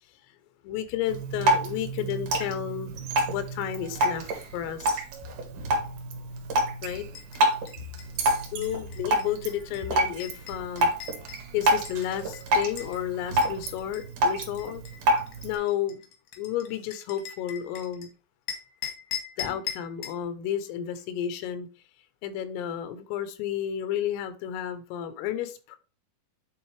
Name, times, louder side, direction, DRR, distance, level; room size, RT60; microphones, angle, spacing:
voice 1, 0.6-2.9 3.3-5.0 6.8-7.1 8.5-10.9 11.5-14.8 15.4-16.0 16.4-18.1 19.4-21.7 22.2-25.8, left 10 dB, 90° left, 11 dB, 3.5 m, -32 dB
Drip, 1.1-15.6, right 1 dB, 60° right, 2.2 m, -28 dB
sound 1, 2.9-12.7, right 8 dB, 80° right, 1.9 m, -45 dB
sound 2, 6.8-13.0 13.4-18.1 18.5-20.2, left 9 dB, 75° left, 1.8 m, -41 dB
10.0 x 3.9 x 3.3 m, 0.34 s
omnidirectional pair, 5.7 m